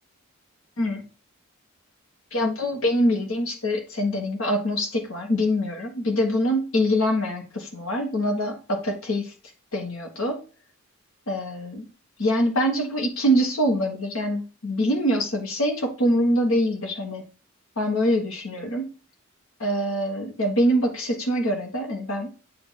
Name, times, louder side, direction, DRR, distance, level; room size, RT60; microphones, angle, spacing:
voice 1, 2.3-9.3 9.7-10.4 11.3-11.8 12.2-17.2 17.8-18.9 19.6-22.3, equal, 75° left, 1 dB, 1.3 m, -24 dB
8.3 x 2.8 x 5.6 m, 0.35 s
head